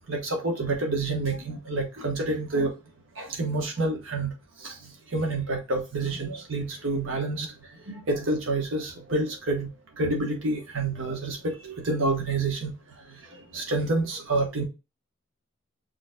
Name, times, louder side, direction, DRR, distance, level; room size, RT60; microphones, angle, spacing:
voice 1, 0.1-2.7 3.2-4.3 4.6-4.7 5.1-7.5 7.9-9.7 10.0-12.7 13.5-14.6, right 2 dB, 90° right, 1 dB, 1.1 m, -28 dB
6.4 x 3.2 x 2.2 m, 0.27 s
head